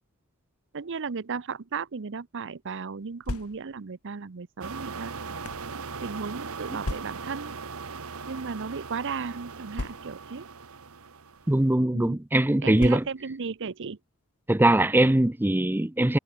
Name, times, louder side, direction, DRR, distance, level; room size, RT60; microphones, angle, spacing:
voice 1, 0.7-5.1 6.0-7.6 8.3-10.5 11.9-12.2 12.6-14.0, right 5 dB, 60° right, 0.7 m, -35 dB
sound 1, 3.0-3.9 4.7-5.7 6.8-7.4 8.3-8.5 8.7-8.8 9.7-10.4 11.3-11.5 12.8-13.4, left 2 dB, 90° left, 1.5 m, -37 dB
sound 2, 4.6-11.6, right 5 dB, 80° right, 1.2 m, -39 dB
voice 2, 11.5-13.0 14.5-16.2, right 1 dB, 10° right, 0.5 m, -21 dB
head